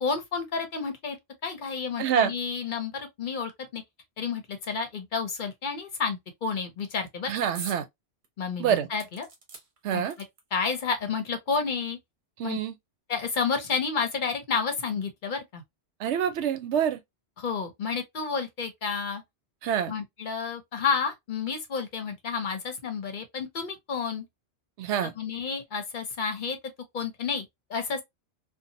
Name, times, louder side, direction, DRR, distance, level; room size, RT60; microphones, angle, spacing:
voice 1, 0.0-1.2 1.4-3.8 4.2-7.3 8.4-9.3 9.9-10.0 10.5-12.0 12.4-12.6 13.1-15.6 17.4-19.2 19.9-24.3 25.2-26.6 26.9-28.0, left 5 dB, 55° left, 0.7 m, -30 dB
voice 2, 2.0-2.3 7.3-7.8 8.6-8.9 9.8-10.1 12.4-12.7 16.0-17.0 19.6-19.9 24.8-25.1, right 9 dB, 90° right, 0.9 m, -26 dB
sound 1, 7.6-7.8 8.2-8.3 9.0-10.6 11.5-11.6 11.9-12.0, right 4 dB, 70° right, 1.1 m, -43 dB
2.7 x 2.1 x 2.6 m
omnidirectional pair, 1.2 m